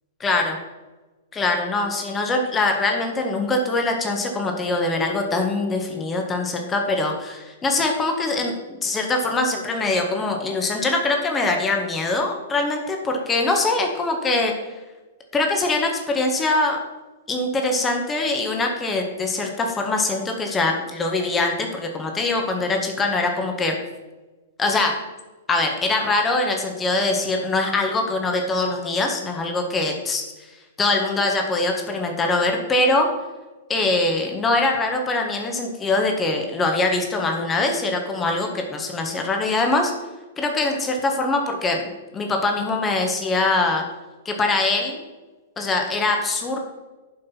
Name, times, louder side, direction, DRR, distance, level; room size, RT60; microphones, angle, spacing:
voice 1, 0.2-0.6 1.3-8.6 8.8-14.5 15.3-16.8 17.3-23.8 24.6-25.0 25.5-30.2 30.8-33.1 33.7-39.9 40.4-41.8 42.1-43.8 44.2-45.0 45.6-46.6, left 2 dB, 15° left, 3 dB, 1.5 m, -23 dB
11.5 x 5.3 x 5.8 m, 1.2 s
figure-of-eight pair, 105°, 0 cm